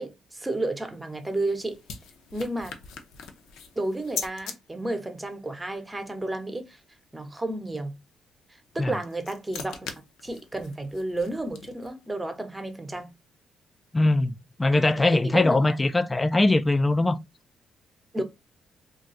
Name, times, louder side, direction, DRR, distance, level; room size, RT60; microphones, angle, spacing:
voice 1, 0.0-1.8 2.3-2.8 3.8-6.8 7.1-8.0 8.5-9.9 10.2-13.1 15.1-15.8 18.1-18.2, right 2 dB, 15° right, 0.7 m, -32 dB
sound 1, 0.9-4.6 8.7-12.1, left 6 dB, 85° left, 0.6 m, -41 dB
voice 2, 13.9-17.2, left 2 dB, 20° left, 0.3 m, -21 dB
2.4 x 2.2 x 3.9 m
cardioid pair, 90°, 0 cm